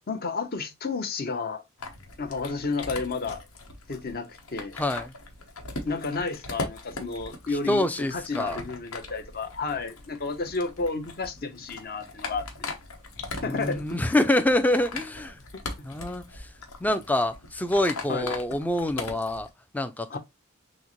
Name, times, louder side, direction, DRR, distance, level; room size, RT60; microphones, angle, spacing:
voice 1, 0.1-1.6 2.2-3.4 3.9-4.8 5.8-12.7 13.4-14.1 18.1-18.3 20.1-20.2, left 4 dB, 45° left, 0.7 m, -31 dB
sound 1, 1.8-19.5, left 3 dB, 90° left, 1.1 m, -40 dB
voice 2, 4.7-5.1 7.5-8.6 13.4-15.4 15.8-16.5 16.8-19.5 19.7-20.2, left 1 dB, 10° left, 0.3 m, -26 dB
6.2 x 2.1 x 3.0 m
head